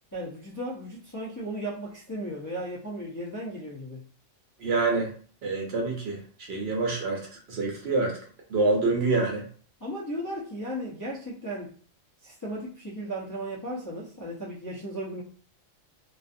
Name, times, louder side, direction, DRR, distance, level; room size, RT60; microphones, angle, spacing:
voice 1, 0.1-4.0 9.8-11.7 12.2-15.2, right 1 dB, 30° left, -6 dB, 0.3 m, -35 dB
voice 2, 4.6-5.1 5.4-6.2 6.5-8.2 8.5-9.4, right 3 dB, 60° right, 0 dB, 0.8 m, -26 dB
2.5 x 2.4 x 2.5 m, 0.42 s
omnidirectional pair, 1.4 m